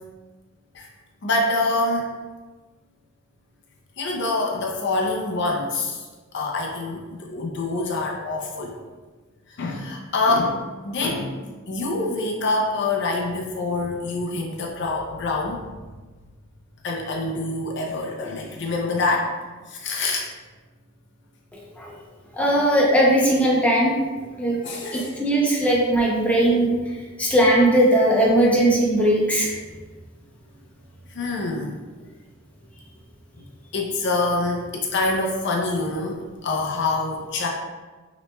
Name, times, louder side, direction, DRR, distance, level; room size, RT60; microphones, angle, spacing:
voice 1, 1.2-2.1 4.0-6.0 6.3-8.7 9.6-11.3 11.7-15.6 16.8-19.3 19.7-20.3 24.6-25.1 31.1-31.8 33.7-37.5, left 2 dB, 55° left, 0 dB, 0.5 m, -25 dB
voice 2, 22.3-23.9 24.4-24.6 24.9-26.7 27.2-29.5, right 1 dB, 5° left, -5 dB, 0.7 m, -19 dB
5.7 x 3.0 x 2.2 m, 1.3 s
head